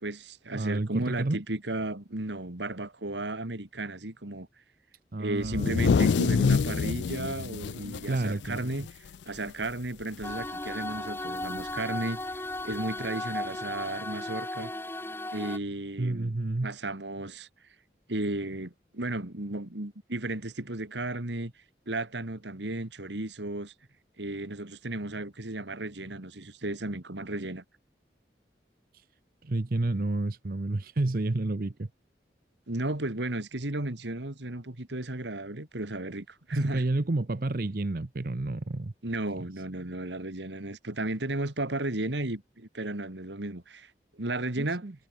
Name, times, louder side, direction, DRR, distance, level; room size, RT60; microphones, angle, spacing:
voice 1, 0.0-4.5 5.2-8.9 9.3-12.4 12.6-14.7 15.3-16.3 16.6-17.5 18.1-21.5 21.9-23.7 24.2-27.6 32.7-36.9 39.0-44.8, right 2 dB, 85° right, 2.4 m, -34 dB
voice 2, 0.5-1.4 5.1-5.9 8.1-8.6 16.0-16.7 28.9-29.0 29.4-31.9 36.7-38.9 39.4-39.5 44.6-44.9, right 2 dB, 50° right, 0.8 m, -30 dB
sound 1, 5.4-9.2 9.5-9.6 10.0-10.5 11.6-11.7 12.7-12.8, left 5 dB, 85° left, 0.4 m, -26 dB
sound 2, 10.2-15.6, left 2 dB, 15° left, 2.3 m, -36 dB
head